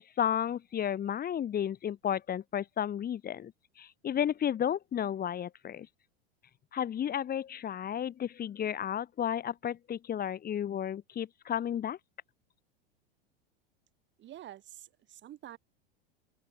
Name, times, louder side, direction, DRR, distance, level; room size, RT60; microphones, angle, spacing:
voice 1, 0.0-5.9 6.7-12.0, left 9 dB, 30° left, 2.5 m, -33 dB
voice 2, 14.2-15.6, right 12 dB, 40° right, 3.5 m, -48 dB
open air
hypercardioid pair, 105°, 30 cm